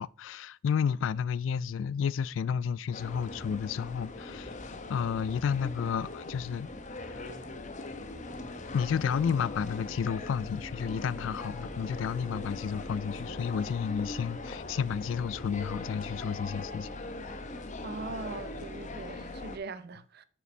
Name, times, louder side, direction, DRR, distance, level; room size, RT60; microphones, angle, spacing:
voice 1, 0.0-4.5 4.9-6.7 7.1-7.3 8.7-16.9, left 7 dB, 80° left, 0.3 m, -31 dB
sound 1, 2.9-19.6, left 2 dB, 40° left, 0.9 m, -41 dB
voice 2, 17.8-20.2, right 3 dB, 55° right, 0.6 m, -41 dB
8.0 x 5.9 x 4.3 m
head